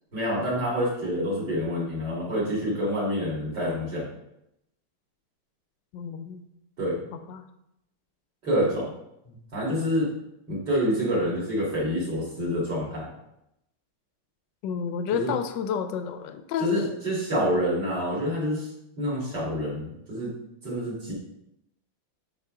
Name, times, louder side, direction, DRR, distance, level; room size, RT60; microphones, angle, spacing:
voice 1, 0.1-4.1 6.8-7.0 8.4-8.9 9.3-10.1 10.5-13.1 15.1-15.3 16.6-18.7 19.0-20.3 20.6-21.1, equal, 50° right, -6 dB, 2.6 m, -27 dB
voice 2, 5.9-6.5 7.3-7.4 14.6-17.0, left 7 dB, 75° left, 10 dB, 1.1 m, -30 dB
8.4 x 4.7 x 3.6 m, 0.84 s
omnidirectional pair, 2.4 m